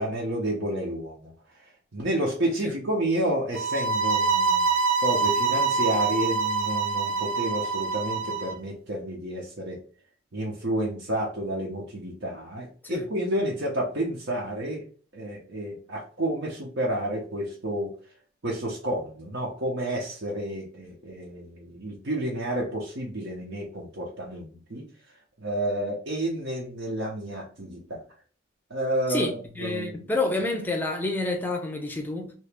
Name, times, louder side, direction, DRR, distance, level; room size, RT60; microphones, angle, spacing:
voice 1, 0.0-1.3 1.9-4.7 5.0-9.8 10.3-14.8 15.1-17.9 18.4-24.9 25.4-28.0 28.7-29.9, right 1 dB, 55° right, 0.7 m, -30 dB
sound 1, 3.5-8.5, right 4 dB, 85° right, 0.4 m, -25 dB
voice 2, 29.1-32.3, left 2 dB, 10° left, 0.5 m, -29 dB
2.8 x 2.6 x 3.3 m
head